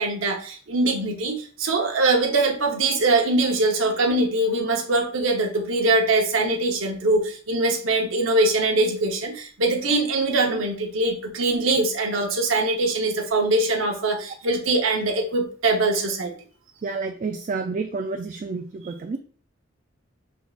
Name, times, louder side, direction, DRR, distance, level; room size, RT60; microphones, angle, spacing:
voice 1, 0.0-16.3, right 2 dB, 85° right, 1 dB, 0.8 m, -22 dB
voice 2, 16.8-19.2, right 4 dB, 40° right, 4 dB, 0.3 m, -30 dB
5.3 x 3.4 x 2.3 m, 0.43 s
head